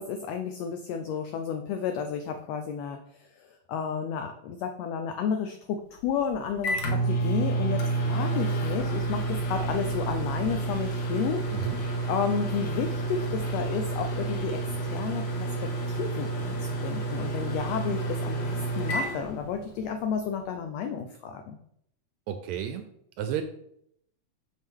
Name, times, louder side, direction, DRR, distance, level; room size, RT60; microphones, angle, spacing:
voice 1, 0.0-3.0 3.4-7.8 8.1-11.4 12.1-21.6, left 6 dB, 90° left, 6 dB, 1.4 m, -32 dB
Microwave oven, 6.0-20.0, right 2 dB, 65° left, 1.4 m, -30 dB
voice 2, 22.3-22.8 23.2-23.4, right 9 dB, 80° right, 8 dB, 1.7 m, -31 dB
6.5 x 6.2 x 3.6 m, 0.72 s
omnidirectional pair, 3.6 m